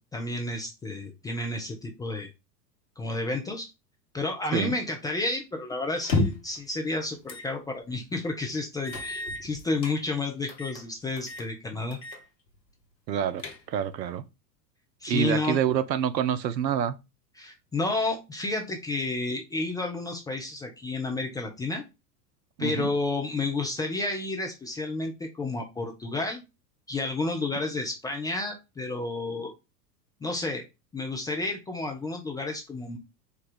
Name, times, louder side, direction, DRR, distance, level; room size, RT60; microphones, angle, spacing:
voice 1, 0.1-2.3 3.0-3.7 4.1-12.0 15.0-15.6 17.4-21.8 22.6-26.4 26.9-29.5 30.2-30.6 30.9-33.0, left 2 dB, 10° left, 0.3 m, -31 dB
sound 1, 6.0-6.6 7.3-7.5 7.9-8.0 8.9-10.0 10.5-10.8 11.2-11.5 11.9-12.2 12.5-12.6 13.1-13.9, left 2 dB, 90° left, 1.1 m, -31 dB
voice 2, 13.1-14.2 15.1-17.0 22.6-22.9, right 9 dB, 85° right, 0.7 m, -27 dB
4.5 x 2.3 x 4.8 m
hypercardioid pair, 85°, 50 cm